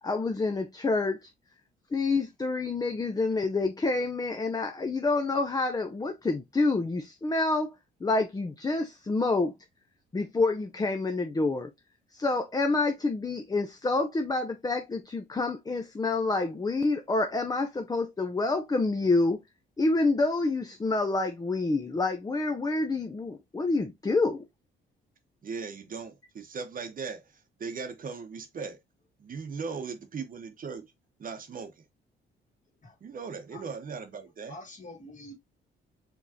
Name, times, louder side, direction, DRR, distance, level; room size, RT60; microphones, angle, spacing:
voice 1, 0.0-1.3 1.9-7.7 8.0-9.5 10.1-11.7 12.1-19.4 19.8-24.4, left 3 dB, 20° left, 0.5 m, -28 dB
voice 2, 25.4-28.8 29.2-30.9 31.2-31.9 33.0-34.6, right 5 dB, 45° right, 0.9 m, -38 dB
voice 3, 34.5-35.3, left 1 dB, 40° left, 2.1 m, -46 dB
4.9 x 3.2 x 2.7 m
cardioid pair, 90°, 20 cm